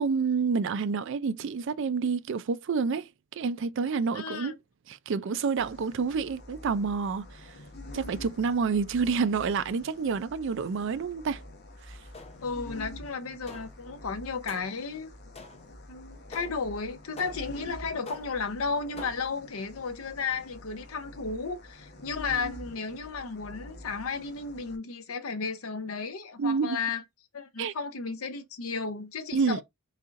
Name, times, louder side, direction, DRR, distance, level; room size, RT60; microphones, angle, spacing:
voice 1, 0.0-3.1 3.4-4.5 4.9-7.5 7.9-11.4 11.9-12.0 26.4-26.8 27.6-27.7 29.3-29.6, right 5 dB, 60° right, 0.4 m, -28 dB
voice 2, 4.1-4.6 12.4-15.1 15.9-27.0 27.3-29.6, left 4 dB, 85° left, 0.7 m, -34 dB
sound 1, 5.6-24.8, left 1 dB, 50° left, 0.9 m, -47 dB
sound 2, 12.1-12.6 13.5-13.9 14.5-14.9 15.3-15.8 16.3-16.7 17.2-17.6 18.1-18.5 19.0-19.4, left 3 dB, 30° left, 0.7 m, -46 dB
4.1 x 3.8 x 2.5 m
head